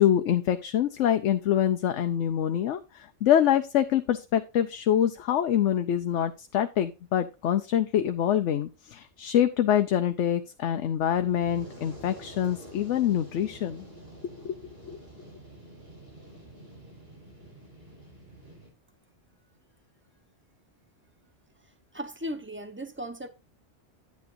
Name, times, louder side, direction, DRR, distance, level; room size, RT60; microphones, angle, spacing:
voice 1, 0.0-13.8 14.4-14.6 14.9-15.0, left 10 dB, 90° left, 1.0 m, -25 dB
Fire, 11.0-18.7, right 1 dB, 55° right, 5.1 m, -48 dB
voice 2, 21.9-23.3, equal, 10° right, 1.0 m, -36 dB
9.5 x 9.3 x 2.6 m
omnidirectional pair, 1.2 m